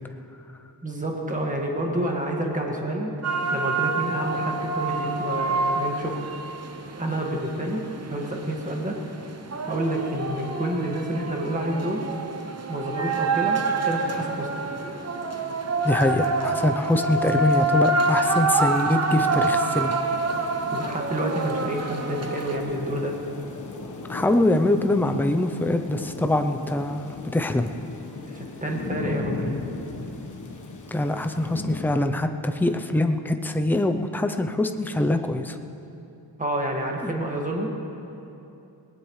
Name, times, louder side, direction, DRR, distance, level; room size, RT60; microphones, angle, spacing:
voice 1, 0.8-3.1 3.5-6.3 7.0-7.8 8.1-9.0 9.7-12.0 12.7-14.8 20.7-23.2 28.3-29.4 36.4-37.7, right 1 dB, 20° right, -1 dB, 1.8 m, -29 dB
sound 1, 3.2-22.6, right 3 dB, 35° right, 0.9 m, -27 dB
voice 2, 15.8-20.0 24.1-27.7 30.9-35.6 37.0-37.1, left 1 dB, 5° left, 6 dB, 0.5 m, -24 dB
sound 2, 19.1-31.9, left 3 dB, 45° left, 1.3 m, -37 dB
20.0 x 19.0 x 3.2 m, 2.9 s
wide cardioid pair, 175°, 43 cm